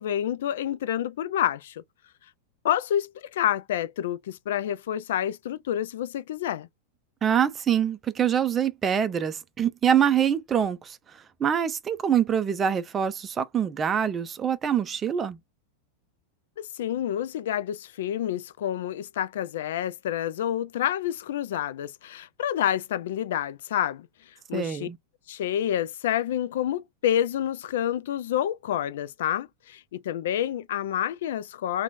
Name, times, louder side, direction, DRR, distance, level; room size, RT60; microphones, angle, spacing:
voice 1, 0.0-1.8 2.6-6.7 16.7-24.1 24.5-24.9 25.3-31.8, left 11 dB, 55° left, 0.3 m, -28 dB
voice 2, 7.2-15.4 24.5-25.0, right 8 dB, 25° right, 0.4 m, -25 dB
2.9 x 2.2 x 3.9 m
figure-of-eight pair, 90°, 0 cm